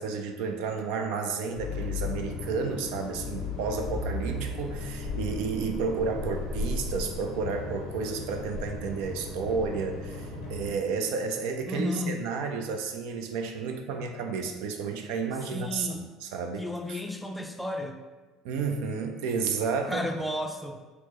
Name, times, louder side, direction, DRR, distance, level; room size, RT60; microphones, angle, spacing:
voice 1, 0.0-17.0 18.4-20.1, right 5 dB, 70° right, 4 dB, 0.3 m, -31 dB
sound 1, 1.6-10.7, left 3 dB, 80° left, 0.6 m, -35 dB
voice 2, 11.7-12.2 15.5-16.0 16.6-18.0 19.9-20.8, left 1 dB, 5° left, 3 dB, 0.4 m, -33 dB
4.2 x 2.0 x 3.0 m, 1.3 s
hypercardioid pair, 70°, 0 cm